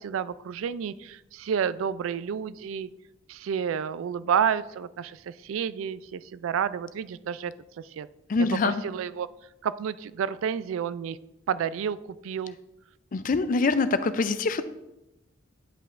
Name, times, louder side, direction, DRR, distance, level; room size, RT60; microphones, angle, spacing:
voice 1, 0.0-2.9 3.3-8.1 8.6-9.3 9.6-11.2 11.5-12.0 12.2-12.6, right 7 dB, 85° right, 16 dB, 0.3 m, -30 dB
voice 2, 8.3-8.8 13.1-14.6, left 3 dB, 45° left, 12 dB, 0.4 m, -24 dB
9.6 x 5.6 x 2.5 m, 0.91 s
head